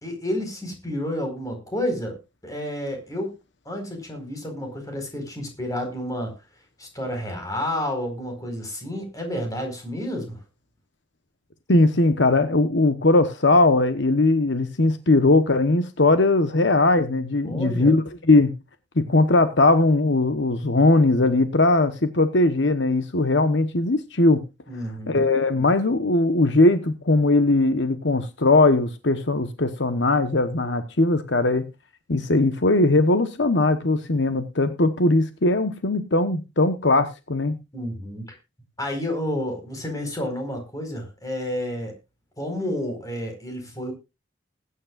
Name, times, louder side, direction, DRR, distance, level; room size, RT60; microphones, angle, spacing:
voice 1, 0.0-2.2 2.4-3.3 3.6-6.3 6.8-10.4 17.4-18.0 24.7-25.2 37.7-38.4 38.8-42.0 42.4-43.9, left 1 dB, 20° left, 3 dB, 4.7 m, -30 dB
voice 2, 11.7-18.6 19.0-24.4 25.1-31.7 32.1-37.6, left 2 dB, 65° left, 10 dB, 1.1 m, -19 dB
20.5 x 9.7 x 2.5 m, 0.27 s
head